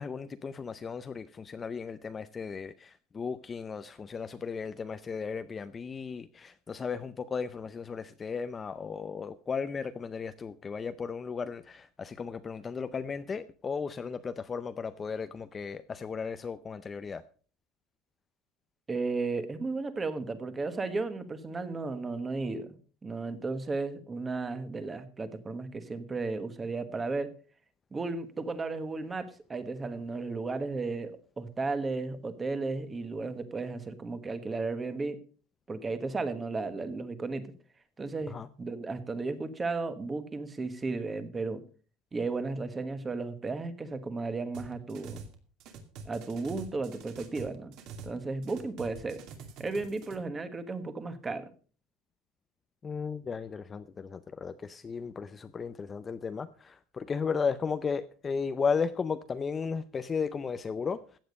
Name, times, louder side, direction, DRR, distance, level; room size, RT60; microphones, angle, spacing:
voice 1, 0.0-17.2 38.3-38.5 52.8-61.0, left 5 dB, 20° left, 0.5 m, -35 dB
voice 2, 18.9-22.7 23.0-27.3 27.9-35.2 35.7-37.5 38.0-41.6 42.1-45.2 46.0-47.8 48.0-49.2 49.6-51.5, right 3 dB, 15° right, 1.3 m, -34 dB
sound 1, 44.5-45.3 45.6-48.2 48.4-50.2, right 4 dB, 50° right, 2.4 m, -46 dB
15.0 x 8.9 x 5.3 m
cardioid pair, 160°, 0 cm